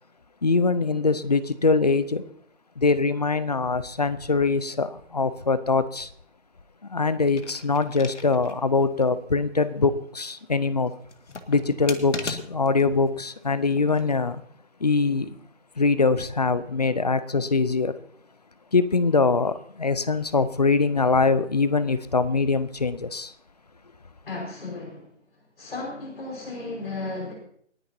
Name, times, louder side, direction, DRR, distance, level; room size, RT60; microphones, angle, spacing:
voice 1, 0.4-2.2 2.8-6.1 6.9-10.9 11.5-14.4 14.8-15.4 15.8-17.9 18.7-23.3, left 4 dB, 35° left, 0.6 m, -23 dB
sound 1, 7.2-8.6 9.0-9.1 11.0-12.8 13.7-14.2, left 4 dB, 75° left, 1.9 m, -37 dB
voice 2, 24.2-25.1 25.6-27.3, left 3 dB, 50° left, 5.1 m, -34 dB
28.0 x 10.0 x 2.8 m
figure-of-eight pair, 165°, 36 cm